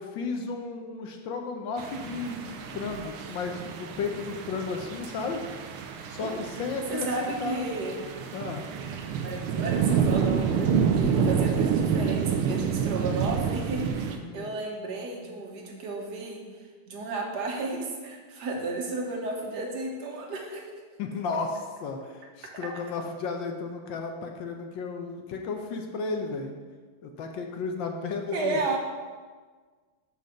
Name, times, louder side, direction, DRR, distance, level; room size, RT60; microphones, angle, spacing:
voice 1, 0.0-5.4 6.1-7.6 8.3-8.7 14.2-14.5 21.0-26.5 27.0-28.6, left 4 dB, 70° left, 3 dB, 1.3 m, -33 dB
sound 1, 1.8-14.2, right 6 dB, 90° right, 1.6 m, -28 dB
voice 2, 6.2-6.6 6.9-8.1 9.2-16.4 16.9-20.6 22.6-22.7 28.3-28.8, right 3 dB, 55° right, 0 dB, 1.5 m, -33 dB
5.4 x 5.1 x 6.4 m, 1.5 s
omnidirectional pair, 2.4 m